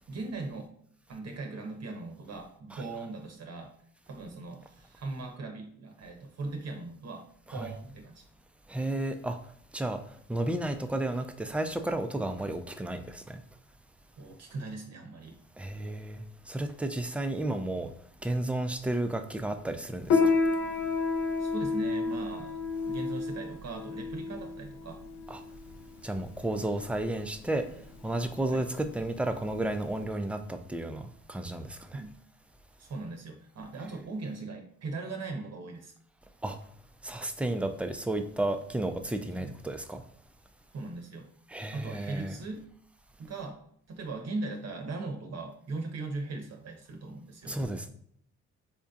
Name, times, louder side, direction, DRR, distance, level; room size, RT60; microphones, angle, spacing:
voice 1, 0.1-0.7 1.1-3.7 4.1-8.2 14.2-15.4 21.4-25.0 28.5-28.6 31.9-32.2 32.8-35.9 39.4-39.5 40.7-41.3 41.7-42.7 43.2-43.6 43.9-47.6, right 3 dB, 55° right, 0.8 m, -39 dB
voice 2, 8.7-9.4 9.7-10.0 10.3-13.4 15.6-17.9 18.2-20.3 25.3-25.4 26.0-27.7 28.0-32.0 36.4-36.6 37.0-40.0 41.5-42.4 47.5-47.9, right 1 dB, 5° right, 0.4 m, -32 dB
Piano, 20.1-30.0, left 4 dB, 85° left, 0.6 m, -31 dB
4.3 x 2.7 x 2.4 m
cardioid pair, 75°, 31 cm